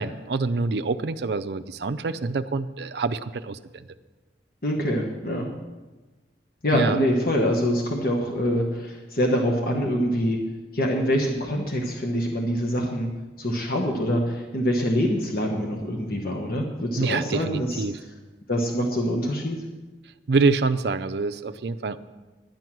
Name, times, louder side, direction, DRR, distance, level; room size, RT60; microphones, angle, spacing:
voice 1, 0.0-3.9 6.7-7.0 17.0-18.0 20.3-22.0, right 4 dB, 65° right, 10 dB, 0.5 m, -26 dB
voice 2, 4.6-5.5 6.6-10.4 10.7-13.1 13.4-17.8 18.5-19.6, equal, 55° left, 1 dB, 1.2 m, -25 dB
10.5 x 9.3 x 6.1 m, 1.2 s
head